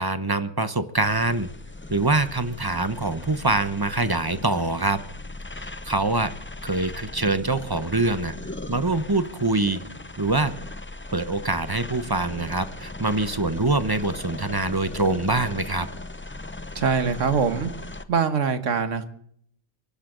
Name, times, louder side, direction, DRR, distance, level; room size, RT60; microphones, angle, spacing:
voice 1, 0.0-1.5 1.9-5.0 5.6-6.3 6.6-8.3 8.7-9.8 10.2-10.5 11.1-15.9, right 2 dB, 20° right, 11 dB, 0.8 m, -24 dB
sound 1, 1.0-18.0, left 2 dB, 15° left, 0.4 m, -38 dB
voice 2, 16.7-17.7 18.1-19.0, right 6 dB, 85° right, 9 dB, 1.6 m, -23 dB
24.5 x 12.0 x 3.9 m, 0.64 s
omnidirectional pair, 1.3 m